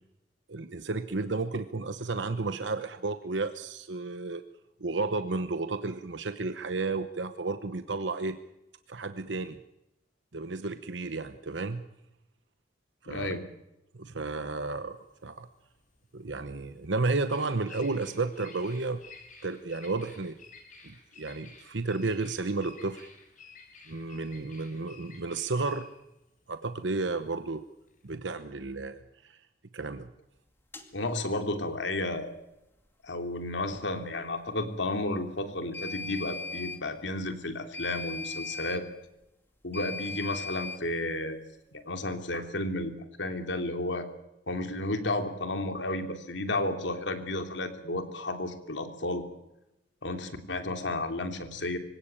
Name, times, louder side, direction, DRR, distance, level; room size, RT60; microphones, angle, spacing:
voice 1, 0.5-4.4 4.8-8.4 8.9-9.6 10.3-11.8 13.0-13.3 13.9-15.0 15.2-15.5 16.1-19.0 19.4-20.4 20.8-23.1 23.9-25.9 26.5-27.6 28.0-29.4 29.7-30.1, right 3 dB, 90° right, 10 dB, 1.0 m, -32 dB
voice 2, 13.1-13.4 30.9-32.3 33.0-38.9 39.6-41.4 41.7-42.9 43.2-44.1 44.5-49.2 50.0-51.8, left 2 dB, 90° left, 6 dB, 3.0 m, -32 dB
Bird vocalization bird call bird song, 14.9-28.2, left 4 dB, 45° left, 6.3 m, -53 dB
sound 1, 30.7-30.9 35.7-36.8 37.7-38.8 39.7-40.8, left 3 dB, 15° left, 2.3 m, -38 dB
25.0 x 17.0 x 8.8 m, 0.91 s
head